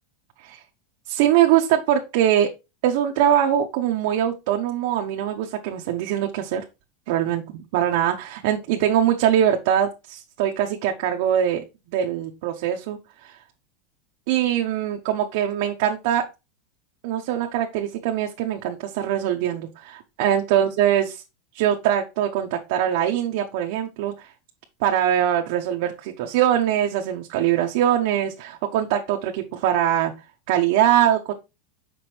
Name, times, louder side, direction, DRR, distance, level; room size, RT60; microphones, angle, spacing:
voice 1, 1.1-2.5 2.8-6.6 7.1-11.6 11.9-13.4 14.3-16.3 17.0-21.2 21.5-24.3 24.8-30.1 30.5-31.3, right 10 dB, 55° right, 2 dB, 0.8 m, -22 dB
6.1 x 5.0 x 3.3 m, 0.25 s
supercardioid pair, 165°, 0 cm